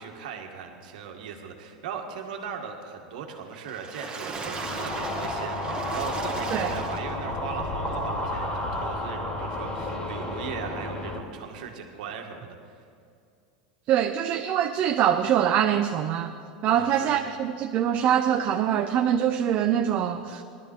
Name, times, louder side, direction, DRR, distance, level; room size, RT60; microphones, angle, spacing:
voice 1, 0.0-12.6 16.6-17.1, right 6 dB, 75° right, 3 dB, 1.8 m, -38 dB
Water / Splash splatter, 3.5-7.4 7.9-8.0 8.4-8.5, right 4 dB, 20° right, 2.0 m, -37 dB
sound 1, 4.3-11.2, left 1 dB, 30° left, 2.7 m, -31 dB
voice 2, 13.9-16.3 16.6-20.4, right 10 dB, 45° right, 4 dB, 0.7 m, -24 dB
18.5 x 12.5 x 4.5 m, 2.4 s
hypercardioid pair, 105°, 4 cm